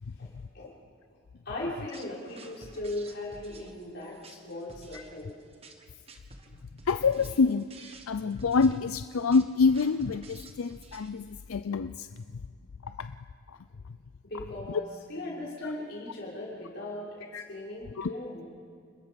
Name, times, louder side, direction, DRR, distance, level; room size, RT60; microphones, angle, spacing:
voice 1, 1.4-5.3 14.2-18.4, left 1 dB, 50° left, -5 dB, 6.2 m, -38 dB
sound 1, 1.9-11.4, right 2 dB, 30° right, 1.5 m, -51 dB
voice 2, 6.9-7.7 8.1-12.1 13.0-13.1 17.3-17.4 18.0-18.1, left 4 dB, 85° left, 11 dB, 0.5 m, -26 dB
30.0 x 20.0 x 5.3 m, 2.2 s
head